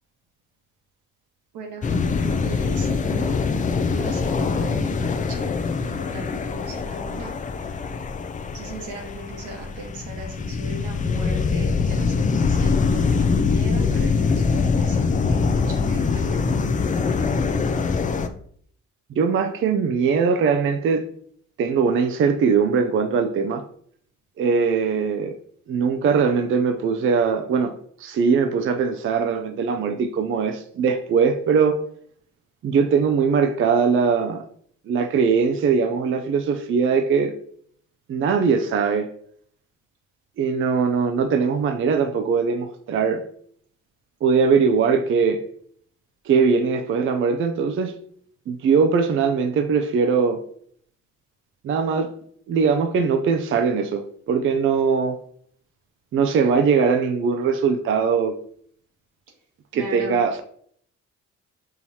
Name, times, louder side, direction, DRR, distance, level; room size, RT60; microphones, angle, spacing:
voice 1, 1.5-3.4 3.7-5.6 5.8-7.3 8.5-16.5 59.7-60.2, right 2 dB, 85° right, 1.4 m, -38 dB
sound 1, 1.8-18.3, left 4 dB, 25° left, 0.4 m, -23 dB
voice 2, 19.2-21.0 21.6-23.6 24.4-25.3 25.7-27.7 28.0-31.8 32.6-34.4 34.9-37.3 38.1-39.1 40.4-43.2 44.2-45.4 46.3-47.9 48.5-50.4 51.6-52.1 52.5-55.2 56.1-58.3 59.7-60.4, right 5 dB, 45° right, 0.4 m, -21 dB
5.6 x 3.0 x 2.8 m
cardioid pair, 90°, 30 cm